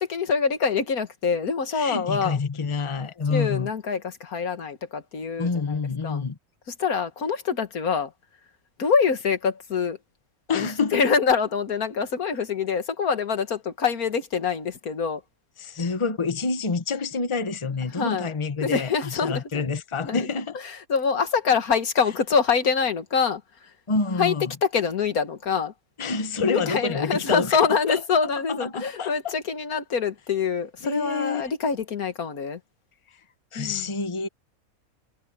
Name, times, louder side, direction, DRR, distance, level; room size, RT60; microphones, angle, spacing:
voice 1, 0.1-2.4 3.3-5.8 6.0-6.2 6.7-8.1 8.8-10.0 10.5-15.2 17.9-18.3 18.6-19.7 20.0-20.3 20.6-23.4 24.2-24.3 24.6-25.7 26.5-32.6 33.6-33.9, left 6 dB, 85° left, 2.1 m, -25 dB
voice 2, 1.7-3.7 5.4-6.4 10.5-11.0 15.6-20.6 23.9-24.5 26.0-27.6 27.9-28.0 28.6-29.3 30.8-31.4 33.5-34.3, left 4 dB, 25° left, 1.1 m, -27 dB
omnidirectional pair, 1.5 m